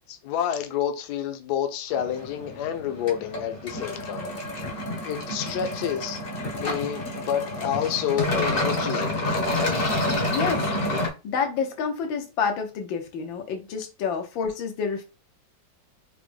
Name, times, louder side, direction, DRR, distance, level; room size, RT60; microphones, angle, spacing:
voice 1, 0.1-4.4 5.0-6.2 6.6-9.3, left 9 dB, 70° left, 1.1 m, -29 dB
sound 1, 1.9-11.1, left 1 dB, 45° left, 0.7 m, -28 dB
voice 2, 10.3-11.0 11.2-15.0, left 6 dB, 90° left, 1.6 m, -29 dB
4.7 x 2.1 x 3.2 m
omnidirectional pair, 2.0 m